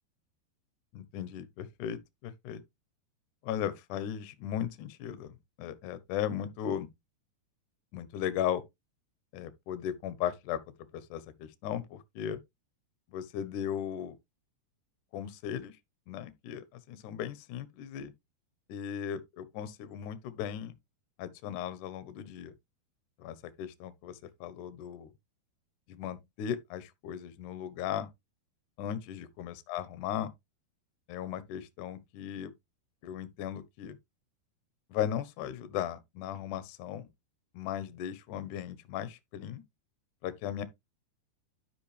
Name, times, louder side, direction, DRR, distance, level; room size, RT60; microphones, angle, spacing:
voice 1, 0.9-2.6 3.4-6.9 7.9-8.6 9.3-10.6 10.9-12.4 13.1-14.2 15.1-15.8 16.1-18.1 18.7-20.7 21.2-22.5 23.2-25.1 25.9-28.1 28.8-30.3 31.1-32.5 33.0-34.0 34.9-37.1 37.5-39.6 40.2-40.6, left 10 dB, 75° left, 1.9 m, -37 dB
11.5 x 5.6 x 3.3 m
omnidirectional pair, 5.2 m